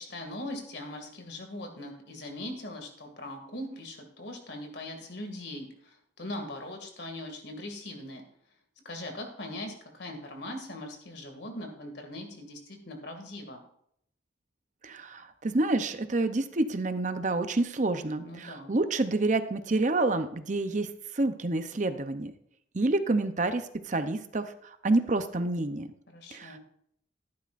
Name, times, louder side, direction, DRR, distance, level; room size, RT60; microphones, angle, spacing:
voice 1, 0.0-8.2 8.8-13.6 18.2-18.8 26.1-26.6, left 1 dB, 65° left, 3 dB, 2.3 m, -40 dB
voice 2, 14.8-22.3 22.7-25.9 26.3-26.6, right 2 dB, 40° right, 9 dB, 0.7 m, -28 dB
14.0 x 11.5 x 2.6 m, 0.70 s
head